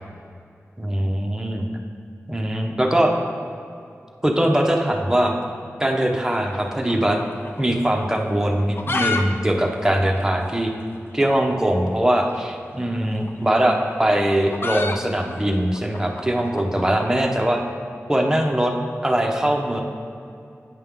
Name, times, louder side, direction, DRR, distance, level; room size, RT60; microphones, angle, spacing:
voice 1, 0.8-1.7 2.3-3.1 4.2-5.3 5.8-7.2 7.6-10.7 11.1-17.6 18.1-18.7 19.0-19.8, right 1 dB, 10° right, 1 dB, 0.9 m, -21 dB
sound 1, 6.3-7.6 7.9-8.0 8.5-9.2 9.5-9.6 9.8-9.9 10.5-10.6 11.8-12.0 13.1-17.3, left 3 dB, 45° left, 0.5 m, -29 dB
9.0 x 5.5 x 3.6 m, 2.5 s
wide cardioid pair, 55°, 5 cm